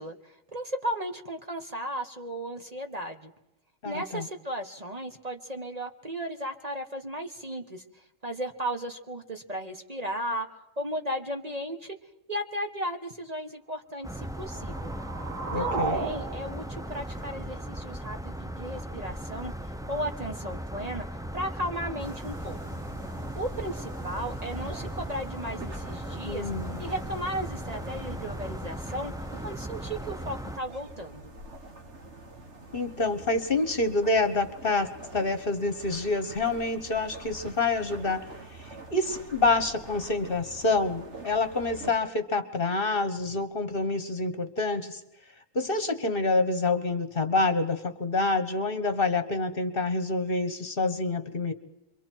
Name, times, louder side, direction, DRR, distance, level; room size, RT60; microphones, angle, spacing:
voice 1, 0.0-3.3 3.8-12.0 12.3-14.9 15.5-22.6 23.3-26.5 26.8-29.1 29.4-31.3, equal, 30° right, 4 dB, 1.4 m, -35 dB
voice 2, 3.8-4.3 15.5-16.1 26.2-26.8 32.7-38.2 38.6-45.0 45.5-51.5, left 3 dB, 45° left, 7 dB, 1.5 m, -27 dB
sound 1, 14.0-30.6, equal, 5° right, 0.5 m, -37 dB
sound 2, 14.1-18.1, right 4 dB, 90° right, 2.4 m, -35 dB
sound 3, 22.0-41.9, right 2 dB, 60° right, 2.1 m, -45 dB
29.5 x 23.5 x 4.6 m, 0.89 s
omnidirectional pair, 1.3 m